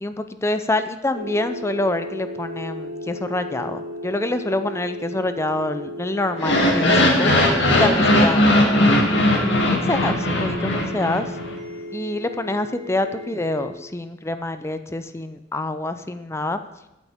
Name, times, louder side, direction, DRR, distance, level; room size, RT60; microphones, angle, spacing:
voice 1, 0.0-7.3 7.8-8.9 9.4-11.3 11.9-16.6, left 2 dB, 15° left, 10 dB, 0.5 m, -26 dB
sound 1, 1.1-13.7, left 1 dB, 55° right, 2.1 m, -35 dB
sound 2, 6.3-11.5, left 1 dB, 90° left, 2.4 m, -18 dB
21.0 x 8.2 x 3.6 m, 0.89 s
head